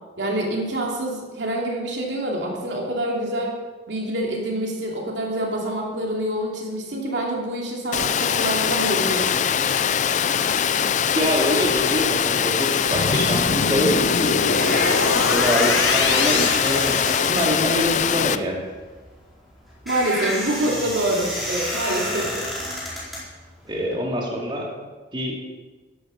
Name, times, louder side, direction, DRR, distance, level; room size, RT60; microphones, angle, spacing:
voice 1, 0.2-3.5 3.9-9.4 19.8-22.5, right 1 dB, 70° right, -1 dB, 2.9 m, -26 dB
Water, 7.9-18.4, left 8 dB, 40° left, 0.4 m, -22 dB
voice 2, 11.1-18.6 23.6-24.7 25.1-25.4, equal, 25° right, -2 dB, 2.6 m, -25 dB
sound 1, 12.9-17.7, left 4 dB, 80° left, 1.1 m, -25 dB
sound 2, 14.3-23.9, left 1 dB, ahead, 4.5 m, -30 dB
14.5 x 11.5 x 5.3 m, 1.3 s
head